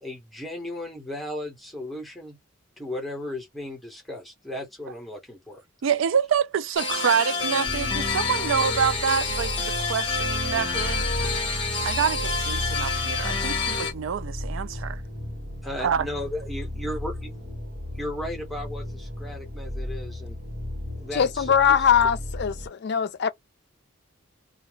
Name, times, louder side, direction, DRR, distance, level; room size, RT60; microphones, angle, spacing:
voice 1, 0.0-2.4 2.8-5.6 15.6-17.1 17.9-20.4 20.9-21.5, left 1 dB, ahead, 0.9 m, -35 dB
voice 2, 5.8-11.0 11.8-15.0 15.8-16.0, right 7 dB, 65° right, 0.3 m, -26 dB
sound 1, 6.8-13.9, left 4 dB, 25° left, 0.8 m, -28 dB
sound 2, 7.7-22.7, left 1 dB, 45° right, 1.4 m, -34 dB
voice 3, 21.1-23.3, left 7 dB, 50° left, 0.3 m, -21 dB
2.3 x 2.2 x 3.2 m
head